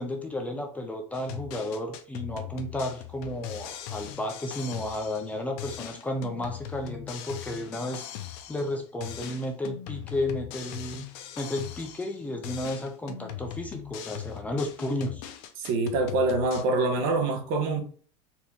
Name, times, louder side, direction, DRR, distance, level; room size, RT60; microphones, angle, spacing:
voice 1, 0.0-11.1 11.4-15.2, left 1 dB, 10° left, 0.6 m, -33 dB
sound 1, 1.1-5.3 5.6-8.7 9.0-12.2 12.4-16.6, left 12 dB, 65° left, 0.7 m, -40 dB
voice 2, 15.6-17.8, right 3 dB, 60° right, 1.3 m, -25 dB
4.4 x 2.9 x 3.5 m
supercardioid pair, 145°, 15 cm